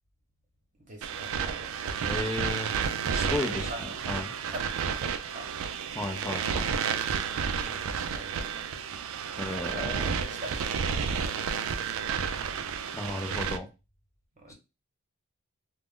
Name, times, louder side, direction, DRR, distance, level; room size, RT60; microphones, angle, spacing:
voice 1, 0.9-1.7 3.1-4.0 4.5-5.5 7.4-8.7 9.7-11.8 14.3-14.5, right 1 dB, 35° right, 2 dB, 0.9 m, -44 dB
sound 1, 1.0-13.6, right 6 dB, 65° right, 0.3 m, -31 dB
voice 2, 2.0-2.7 3.1-3.7 4.1-4.3 5.9-6.7 9.4-10.1 12.9-13.7 14.5-14.6, left 2 dB, 15° left, 4 dB, 0.5 m, -34 dB
2.4 x 2.1 x 3.5 m, 0.27 s
head